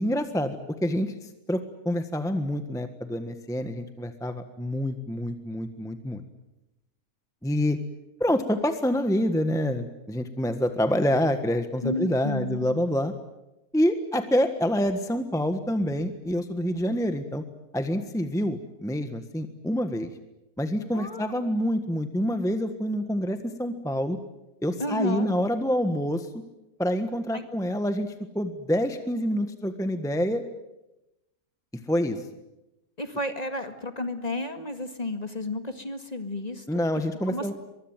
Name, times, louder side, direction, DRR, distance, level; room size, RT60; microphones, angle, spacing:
voice 1, 0.0-6.2 7.4-7.8 8.2-13.1 13.7-17.4 17.7-20.1 20.6-24.2 24.6-26.3 26.8-30.4 31.9-32.2 36.7-37.5, equal, ahead, 8 dB, 1.4 m, -27 dB
voice 2, 11.8-12.8 20.9-21.4 24.8-25.3 27.3-27.4 33.0-36.8 37.3-37.5, left 2 dB, 25° left, 7 dB, 2.1 m, -32 dB
24.0 x 23.0 x 9.1 m, 0.94 s
omnidirectional pair, 1.5 m